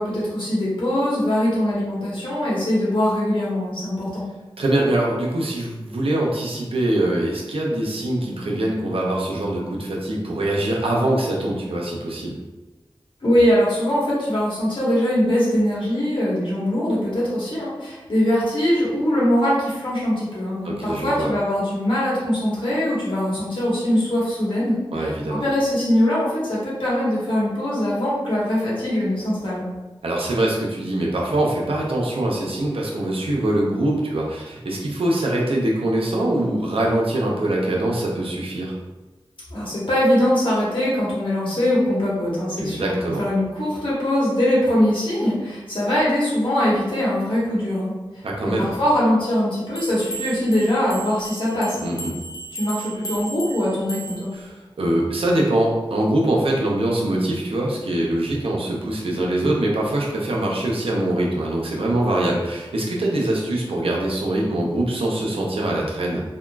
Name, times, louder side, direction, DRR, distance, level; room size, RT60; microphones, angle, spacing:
voice 1, 0.0-4.3 13.2-29.6 39.5-51.9 52.5-54.3, left 1 dB, 65° left, -7 dB, 1.3 m, -22 dB
voice 2, 4.6-12.4 20.6-21.3 24.9-25.4 30.0-38.8 42.6-43.2 48.2-48.7 51.8-52.2 54.3-66.2, right 1 dB, 80° right, -2 dB, 0.6 m, -23 dB
sound 1, 49.8-54.4, right 3 dB, 45° left, 0.5 m, -36 dB
3.6 x 2.2 x 2.3 m, 1.2 s
wide cardioid pair, 50°, 9 cm